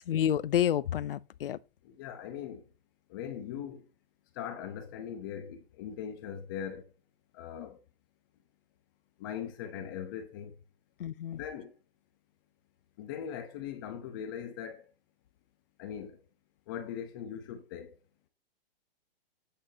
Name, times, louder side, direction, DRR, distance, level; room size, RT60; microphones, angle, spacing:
voice 1, 0.0-1.6 11.0-11.4, left 10 dB, 65° left, 0.6 m, -29 dB
voice 2, 1.8-2.7 3.1-3.8 4.3-6.9 7.3-7.8 9.2-10.6 11.3-11.7 13.0-14.9 15.8-16.2 16.7-18.0, left 8 dB, 20° left, 0.9 m, -40 dB
8.9 x 8.7 x 2.8 m
hypercardioid pair, 170°, 30 cm